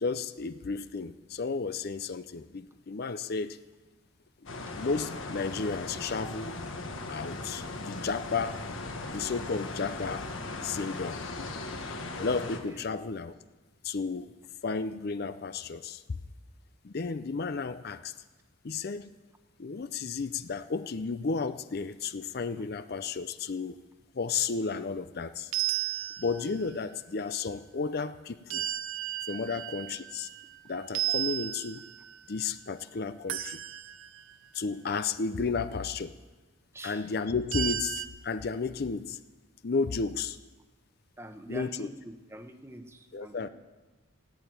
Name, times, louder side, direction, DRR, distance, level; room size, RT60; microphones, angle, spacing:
voice 1, 0.0-3.6 4.7-6.5 7.1-8.6 9.1-10.3 10.6-11.5 12.2-13.3 13.8-14.3 14.6-16.2 16.8-18.1 18.6-19.1 19.6-23.8 24.1-25.5 26.2-28.7 29.3-30.3 30.7-31.8 32.3-33.6 34.5-36.1 36.8-39.2 39.6-40.4 41.5-41.9 43.1-43.5, left 4 dB, 50° left, 12 dB, 0.5 m, -33 dB
sound 1, 4.5-12.6, left 2 dB, 70° left, 1.6 m, -38 dB
sound 2, 25.5-26.7 28.5-30.5 30.9-32.2 33.3-34.3 37.5-38.1, right 13 dB, 80° right, 0.7 m, -33 dB
voice 2, 36.7-37.1 41.2-43.5, right 1 dB, 10° right, 7 dB, 0.9 m, -45 dB
15.5 x 8.8 x 9.3 m, 1.2 s
head